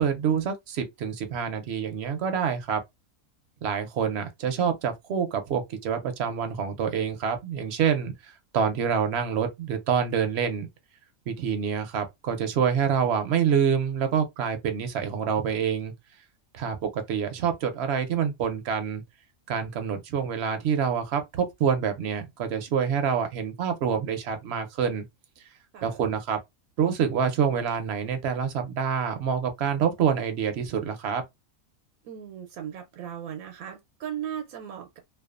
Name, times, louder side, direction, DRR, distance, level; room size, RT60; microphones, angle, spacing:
voice 1, 0.0-2.8 3.6-10.7 11.3-15.9 16.5-19.0 19.5-25.0 25.8-26.4 26.8-31.2, right 7 dB, 65° right, 0.7 m, -27 dB
voice 2, 32.0-35.0, right 9 dB, 85° right, 1.0 m, -37 dB
2.5 x 2.3 x 2.3 m
omnidirectional pair, 1.4 m